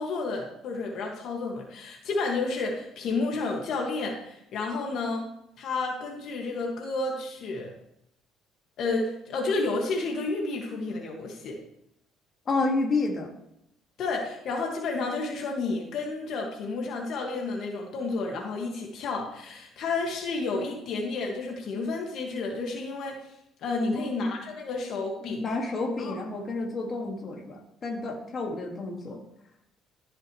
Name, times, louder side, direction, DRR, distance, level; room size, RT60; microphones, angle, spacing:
voice 1, 0.0-5.3 5.6-7.7 8.8-11.6 14.0-23.2 23.6-25.4 26.0-26.2, left 3 dB, 60° left, 0 dB, 2.0 m, -31 dB
voice 2, 12.5-13.3 23.9-24.5 25.2-29.2, left 3 dB, 40° left, 0 dB, 2.1 m, -30 dB
15.0 x 6.5 x 3.2 m, 0.77 s
cardioid pair, 105°, 0 cm